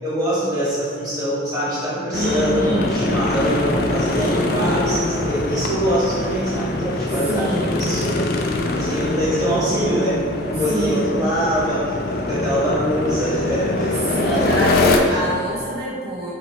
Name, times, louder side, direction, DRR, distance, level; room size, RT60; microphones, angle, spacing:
voice 1, 0.0-8.3 8.6-15.3, equal, 20° right, -10 dB, 1.3 m, -23 dB
sound 1, 2.1-15.0, left 2 dB, 55° left, 0.3 m, -23 dB
voice 2, 2.1-2.9 4.2-4.9 7.1-7.8 10.7-11.1 14.1-16.3, right 1 dB, 60° right, -8 dB, 0.8 m, -27 dB
4.9 x 2.7 x 3.1 m, 2.1 s
head